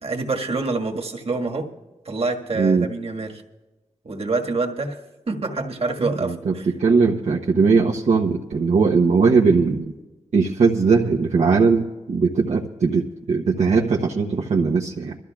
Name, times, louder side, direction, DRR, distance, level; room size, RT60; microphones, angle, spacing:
voice 1, 0.0-1.7 2.1-3.4 4.0-5.0 5.3-6.7, right 3 dB, 55° right, 1 dB, 1.7 m, -26 dB
voice 2, 2.5-2.9 6.0-6.5 6.8-9.8 10.3-15.1, right 4 dB, 70° right, -2 dB, 0.9 m, -19 dB
24.5 x 13.5 x 2.4 m, 1.1 s
cardioid pair, 50°, 12 cm